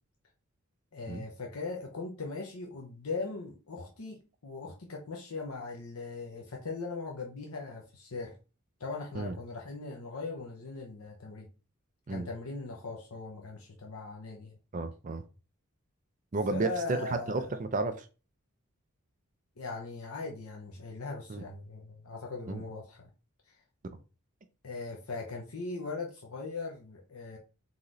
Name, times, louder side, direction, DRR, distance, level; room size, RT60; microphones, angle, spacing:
voice 1, 0.9-4.2 4.4-8.3 8.8-11.5 12.1-14.6 16.5-17.5 19.6-23.1 24.6-27.4, left 3 dB, 85° left, 0.8 m, -39 dB
voice 2, 14.7-15.2 16.3-17.0 17.3-18.0 21.3-21.4 22.5-22.6, right 3 dB, 35° right, 0.4 m, -32 dB
4.1 x 3.1 x 3.8 m
head